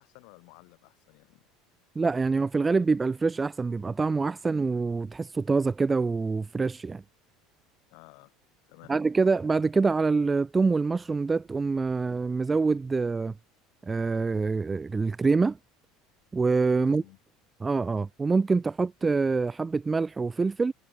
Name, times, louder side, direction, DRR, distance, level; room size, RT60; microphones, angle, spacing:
voice 1, 0.0-1.5 7.9-8.3 8.7-8.9 16.8-17.2, left 39 dB, 65° left, 4.4 m, -53 dB
voice 2, 2.0-7.0 8.9-13.3 13.8-15.6 16.3-17.0 17.6-20.7, right 4 dB, 20° right, 0.6 m, -25 dB
hypercardioid pair, 70°, 0 cm